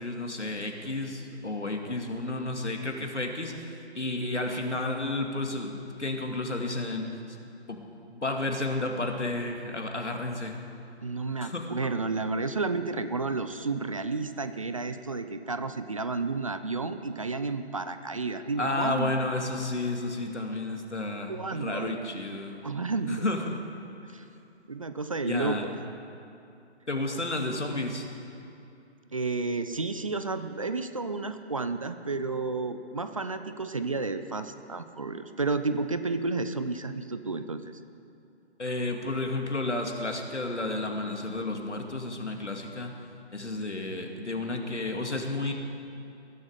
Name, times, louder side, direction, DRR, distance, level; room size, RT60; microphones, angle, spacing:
voice 1, 0.0-3.5 3.9-10.6 11.4-11.7 18.6-22.6 23.1-23.6 25.3-25.6 26.9-28.1 38.6-42.9 43.3-45.5, left 2 dB, 90° left, 3 dB, 2.2 m, -32 dB
voice 2, 11.0-19.2 21.3-22.2 22.6-23.2 24.1-24.2 24.7-25.7 29.1-37.8, right 3 dB, 30° right, 10 dB, 0.5 m, -31 dB
20.5 x 11.0 x 5.0 m, 2.7 s
figure-of-eight pair, 145°, 34 cm